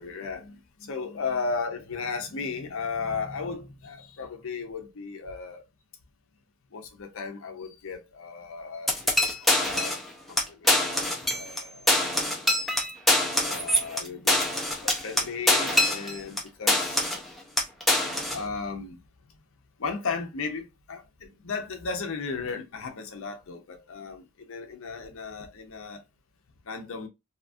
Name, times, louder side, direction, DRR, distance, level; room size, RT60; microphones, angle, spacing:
voice 1, 0.0-5.6 6.7-10.0 10.3-11.9 13.4-14.5 14.8-17.1 18.3-19.0 19.8-26.0 26.6-27.1, left 4 dB, 60° left, 0.6 m, -35 dB
sound 1, 8.9-10.1 10.4-10.5 10.7-11.6 11.9-16.4 16.7-17.3 17.6-18.4, left 1 dB, ahead, 0.5 m, -24 dB
2.8 x 2.4 x 2.5 m
head